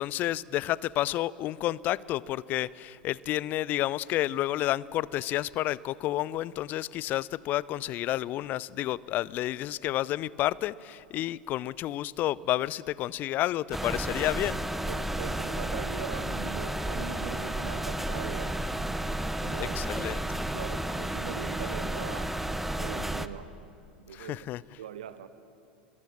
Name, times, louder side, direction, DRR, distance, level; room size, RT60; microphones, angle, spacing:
voice 1, 0.0-14.6 19.6-20.2 24.1-24.6, left 14 dB, 40° left, 22 dB, 0.5 m, -30 dB
sound 1, 13.7-23.3, right 1 dB, 5° right, 0.9 m, -32 dB
voice 2, 14.9-18.6 19.4-19.8 20.5-22.4 22.8-23.5 24.0-24.4 24.8-25.3, right 9 dB, 60° right, 11 dB, 1.1 m, -41 dB
25.0 x 22.5 x 7.6 m, 2.5 s
figure-of-eight pair, 80°, 5 cm